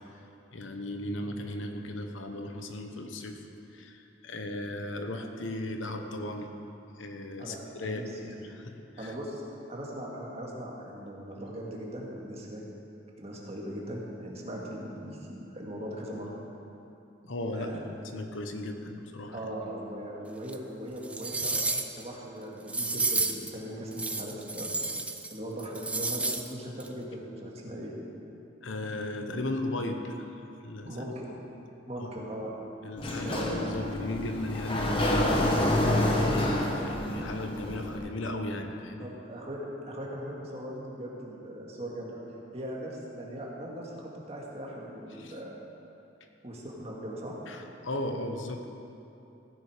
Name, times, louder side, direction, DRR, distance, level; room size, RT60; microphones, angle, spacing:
voice 1, 0.5-3.4 3.7-6.5 7.0-9.1 17.2-17.7 18.1-19.4 21.7-21.8 28.6-30.3 30.6-31.0 32.0-32.2 32.8-39.1 45.1-45.4 47.5-48.7, left 1 dB, 80° left, 5 dB, 1.1 m, -36 dB
voice 2, 7.4-8.3 9.0-12.6 13.2-16.3 17.5-17.8 19.3-21.7 22.0-24.7 25.3-27.9 30.8-31.3 31.9-32.5 33.2-33.7 35.3-35.6 39.0-42.2 42.5-45.6 46.4-47.4, equal, 35° right, -3 dB, 2.0 m, -39 dB
sound 1, 20.5-20.6 21.0-22.0 22.7-23.5 23.9-25.3 25.6-26.5 26.8-26.9, right 3 dB, 5° right, 0.5 m, -31 dB
Sliding door, 33.0-38.0, left 1 dB, 30° left, 1.3 m, -28 dB
15.5 x 9.9 x 5.0 m, 2.8 s
head